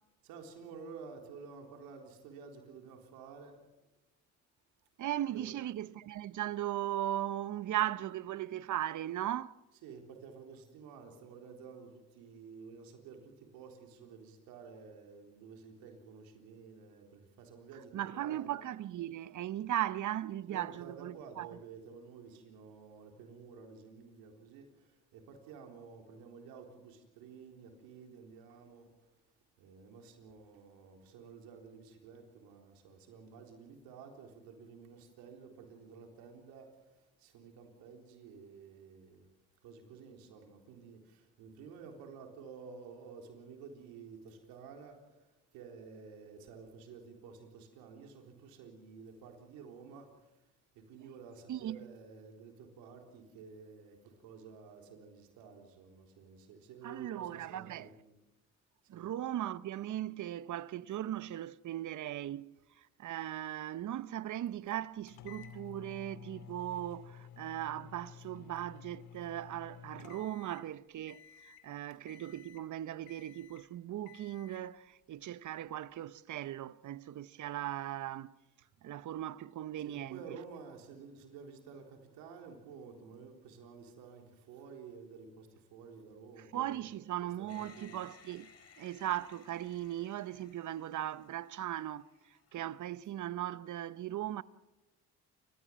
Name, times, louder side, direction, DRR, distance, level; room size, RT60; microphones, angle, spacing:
voice 1, 0.2-3.5 5.3-5.6 9.8-18.6 20.5-24.7 25.1-28.9 29.6-36.7 37.2-39.3 39.6-45.0 45.5-50.1 50.8-58.2 58.9-59.1 79.8-86.9 87.4-88.0, right 5 dB, 85° right, 3.9 m, -52 dB
voice 2, 5.0-9.5 17.9-21.5 51.5-51.9 56.8-57.9 58.9-62.5 62.8-78.4 78.8-80.4 86.4-88.5 88.8-94.4, right 12 dB, 60° right, 0.9 m, -38 dB
sound 1, 65.1-70.7 71.1-71.7 72.1-72.7 73.1-73.7 74.1-74.7, left 9 dB, 85° left, 2.6 m, -53 dB
sound 2, 87.5-92.9, left 6 dB, 45° left, 4.3 m, -61 dB
29.0 x 15.0 x 7.5 m
supercardioid pair, 65°, 35 cm